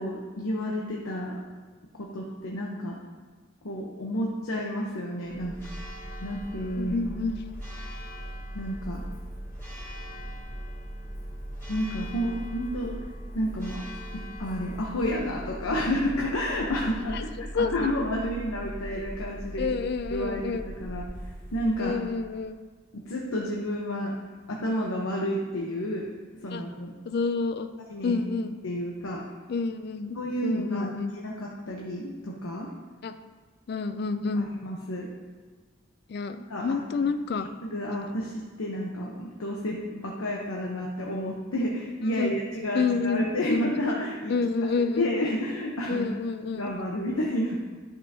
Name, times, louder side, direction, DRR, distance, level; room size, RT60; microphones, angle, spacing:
voice 1, 0.0-1.4 2.0-3.0 3.6-5.6 6.2-7.2 8.5-9.0 11.7-12.9 13.3-13.8 14.1-19.8 20.1-21.1 21.5-21.9 22.9-24.2 24.5-26.1 26.4-26.9 27.9-28.2 28.6-29.2 30.1-32.7 34.4-35.1 36.5-36.8 37.3-44.4 45.0-46.1 46.5-47.6, equal, 90° left, -2 dB, 0.9 m, -30 dB
Church bell, 5.3-22.5, equal, 10° left, 2.3 m, -39 dB
voice 2, 6.8-7.4 17.1-17.2 17.5-17.9 19.6-20.7 21.8-22.6 26.5-26.6 27.1-27.7 28.0-28.6 29.5-30.2 30.4-31.1 33.0-33.1 33.7-34.5 36.1-37.5 42.2-42.4 42.7-43.7 44.3-45.1 45.9-46.7, left 4 dB, 50° left, 10 dB, 0.3 m, -28 dB
11.0 x 5.5 x 2.8 m, 1.4 s
head